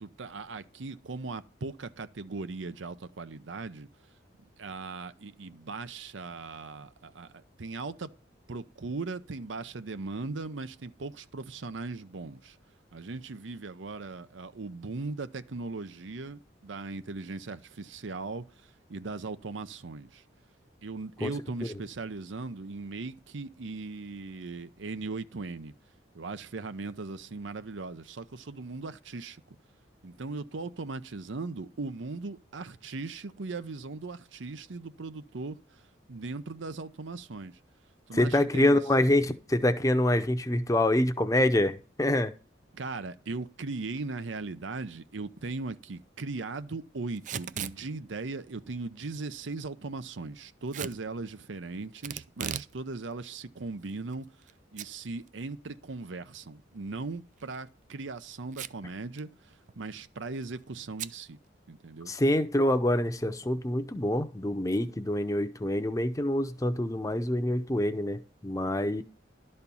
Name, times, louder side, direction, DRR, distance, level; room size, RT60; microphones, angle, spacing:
voice 1, 0.0-3.9 4.4-8.1 8.5-12.6 12.9-20.2 20.8-25.7 26.1-29.4 30.0-37.6 38.1-38.8 42.7-61.4 61.7-62.1, right 3 dB, 85° right, 0.7 m, -38 dB
voice 2, 38.1-42.3 62.1-69.0, left 1 dB, 20° left, 0.7 m, -26 dB
Packing tape duct tape / Tearing, 47.2-47.8 50.7-51.0 52.0-52.7 53.1-53.2 53.9-54.5 54.8-54.9 55.3-55.4 57.3-57.6 58.5-58.9 59.2-59.3 59.5-59.9 61.0-61.2, right 9 dB, 40° right, 0.4 m, -37 dB
12.0 x 4.4 x 7.0 m
head